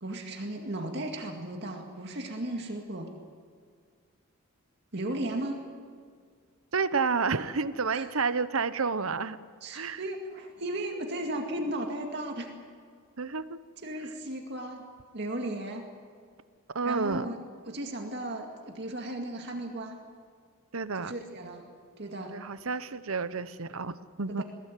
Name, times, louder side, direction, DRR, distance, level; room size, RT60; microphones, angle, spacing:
voice 1, 0.0-3.1 4.9-5.6 7.9-8.1 9.6-12.5 13.8-14.8 15.1-15.9 16.8-17.4 17.7-20.0 21.0-21.7 22.0-22.4 24.3-24.4, right 1 dB, 50° right, 2 dB, 2.2 m, -35 dB
voice 2, 6.7-9.4 9.7-10.0 13.2-13.6 14.0-14.1 16.7-17.3 20.7-21.1 22.3-24.4, right 4 dB, 75° right, 13 dB, 0.9 m, -30 dB
22.5 x 17.5 x 9.2 m, 2.1 s
head